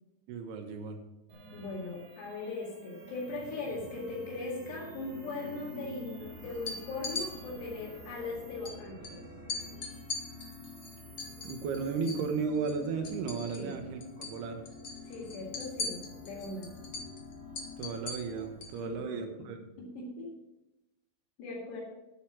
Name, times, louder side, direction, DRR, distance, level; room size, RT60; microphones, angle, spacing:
voice 1, 0.3-1.0 11.4-14.6 17.8-19.6, right 5 dB, 75° right, 5 dB, 3.3 m, -35 dB
sound 1, 1.3-18.9, right 3 dB, 55° right, 4.9 m, -51 dB
voice 2, 1.5-9.3 13.5-13.8 15.1-16.8 18.8-19.5 19.8-20.3 21.4-21.8, left 3 dB, 85° left, -2 dB, 4.4 m, -39 dB
sound 2, 6.2-18.5, left 7 dB, 10° left, 1.2 m, -50 dB
sound 3, 6.5-7.3 8.6-8.7 9.0-9.1 9.5-12.3 12.6-13.8 14.0-14.4 14.7-18.8, left 3 dB, 50° left, 1.8 m, -39 dB
11.0 x 8.2 x 6.2 m, 0.94 s
omnidirectional pair, 4.7 m